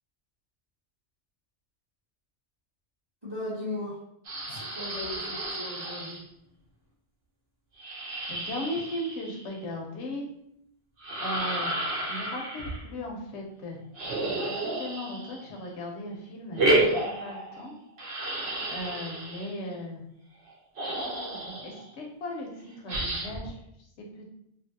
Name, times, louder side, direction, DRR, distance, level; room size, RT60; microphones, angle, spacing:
voice 1, 3.2-4.0 4.5-6.2, left 2 dB, 25° right, -7 dB, 0.7 m, -37 dB
sound 1, 4.2-6.2 7.8-9.6 11.0-12.8 13.9-15.6 16.5-17.7 18.0-19.6 20.5-20.6 20.8-21.8 22.9-23.5, right 1 dB, 65° right, 0.8 m, -31 dB
voice 2, 8.3-10.2 11.2-11.7 12.1-13.8 14.5-17.7 18.7-20.0 21.6-24.3, left 1 dB, 75° left, 0 dB, 1.0 m, -37 dB
2.7 x 2.5 x 2.6 m, 0.76 s
omnidirectional pair, 1.2 m